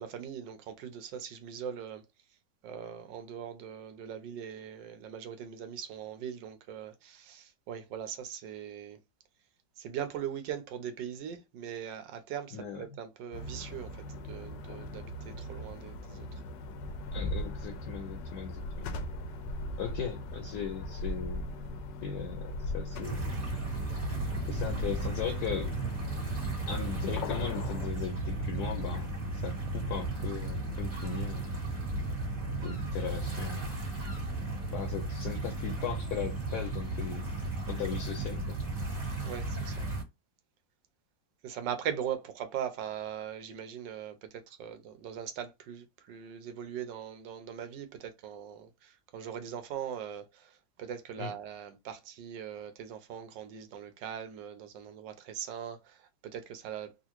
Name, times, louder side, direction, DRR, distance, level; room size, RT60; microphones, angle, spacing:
voice 1, 0.0-2.1 2.6-9.0 9.8-16.4 39.2-39.9 41.4-57.0, right 9 dB, 85° right, 1.4 m, -40 dB
voice 2, 12.5-12.8 17.1-18.9 19.8-21.5 22.0-23.3 24.5-25.7 26.7-29.1 29.4-31.5 32.6-33.7 34.7-38.6 51.2-51.3, left 7 dB, 70° left, 1.1 m, -38 dB
sound 1, 13.3-27.9, left 1 dB, 85° left, 1.3 m, -39 dB
sound 2, 23.0-40.0, right 2 dB, 20° right, 1.9 m, -35 dB
3.8 x 2.4 x 2.9 m
omnidirectional pair, 1.9 m